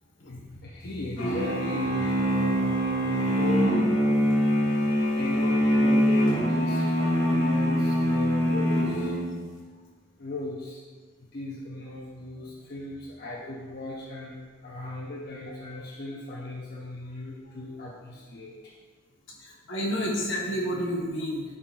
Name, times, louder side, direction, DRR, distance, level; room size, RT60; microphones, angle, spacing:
voice 1, 0.2-4.1 5.1-9.1 10.2-10.8 11.2-14.4 14.6-18.5, left 2 dB, 50° left, -6 dB, 0.7 m, -37 dB
sound 1, 1.2-9.5, equal, 85° left, 1.5 m, -24 dB
voice 2, 19.4-21.4, equal, 65° left, -2 dB, 1.2 m, -29 dB
11.0 x 3.7 x 2.5 m, 1.5 s
head